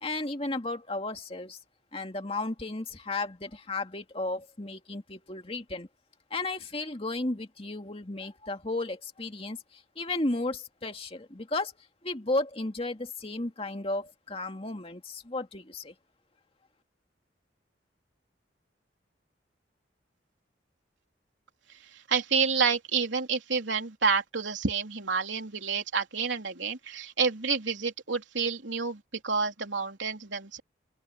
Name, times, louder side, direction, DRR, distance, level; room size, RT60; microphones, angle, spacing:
voice 1, 0.0-1.6 1.9-5.9 6.3-11.7 12.0-15.9, left 2 dB, 30° left, 2.2 m, -34 dB
voice 2, 21.9-30.6, right 5 dB, 80° right, 3.4 m, -29 dB
open air
head